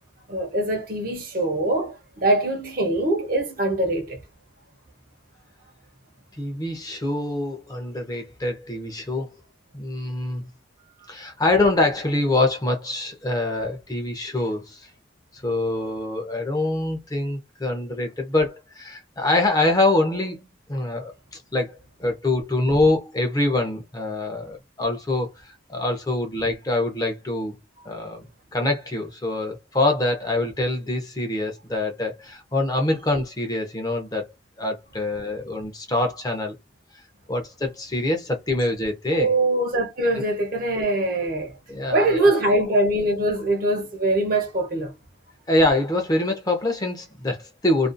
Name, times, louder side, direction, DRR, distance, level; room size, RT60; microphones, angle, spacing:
voice 1, 0.3-4.2 39.1-41.5 41.9-44.9, right 1 dB, 50° right, 0.7 m, -23 dB
voice 2, 6.4-9.3 9.7-10.4 11.1-14.9 15.4-21.1 21.5-27.6 27.8-28.3 28.5-34.3 34.6-36.5 37.3-39.3 40.2-40.3 41.7-42.6 45.5-47.9, left 2 dB, 20° left, 0.5 m, -25 dB
2.5 x 2.3 x 2.5 m
head